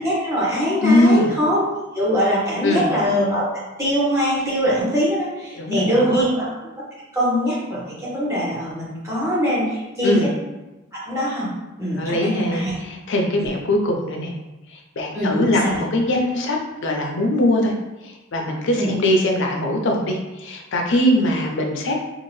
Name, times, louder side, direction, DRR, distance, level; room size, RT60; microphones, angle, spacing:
voice 1, 0.0-1.6 1.9-6.4 7.1-10.3 10.9-11.5 11.8-12.7 13.4-13.5 15.1-15.8 18.7-18.9, equal, 15° right, -8 dB, 1.1 m, -22 dB
voice 2, 0.8-1.3 2.6-2.9 5.5-6.2 10.0-10.3 12.0-14.3 14.7-17.7 18.0-22.0, left 1 dB, 65° left, 2 dB, 0.5 m, -21 dB
2.7 x 2.4 x 3.1 m, 1.1 s
head